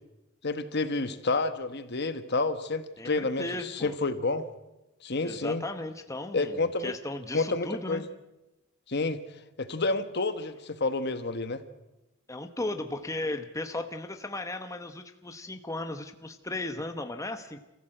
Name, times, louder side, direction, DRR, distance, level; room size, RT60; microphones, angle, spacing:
voice 1, 0.4-4.5 5.0-5.6 6.3-6.9 7.3-8.0 8.9-9.2 9.6-11.6, left 3 dB, 55° left, 10 dB, 1.3 m, -29 dB
voice 2, 3.0-3.9 5.2-8.0 12.3-17.6, left 2 dB, 15° left, 7 dB, 1.1 m, -36 dB
28.0 x 15.0 x 7.8 m, 0.98 s
head